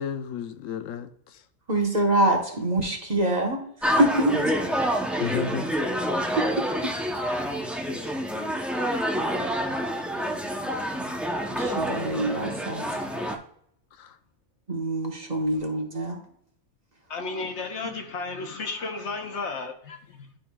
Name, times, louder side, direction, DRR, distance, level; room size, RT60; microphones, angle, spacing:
voice 1, 0.0-1.4 5.2-5.7 13.9-14.2, left 7 dB, 90° left, 9 dB, 1.0 m, -32 dB
voice 2, 1.7-3.6 4.0-4.4 6.4-6.5 6.8-6.9 8.0-8.1 11.6-13.0 14.7-16.2 17.8-17.9, right 1 dB, 35° right, 1 dB, 1.2 m, -25 dB
sound 1, 3.8-13.4, equal, ahead, 0.4 m, -27 dB
voice 3, 17.1-20.4, left 3 dB, 65° left, 4 dB, 1.2 m, -33 dB
11.5 x 5.2 x 2.3 m, 0.69 s
omnidirectional pair, 1.4 m